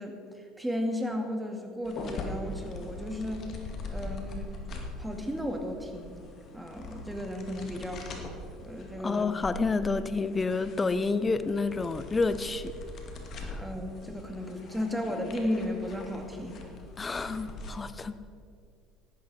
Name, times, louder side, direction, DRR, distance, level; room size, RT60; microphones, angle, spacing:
voice 1, 0.0-3.5 3.9-4.5 5.0-6.2 6.5-8.1 8.6-9.4 13.6-16.6, left 1 dB, 5° right, 3 dB, 2.3 m, -34 dB
sound 1, 1.8-17.7, left 2 dB, 50° left, 2.3 m, -42 dB
voice 2, 9.0-12.7 13.4-13.6 17.0-18.1, left 4 dB, 25° left, 13 dB, 0.8 m, -29 dB
14.5 x 12.0 x 4.4 m, 2.3 s
hypercardioid pair, 75°, 0 cm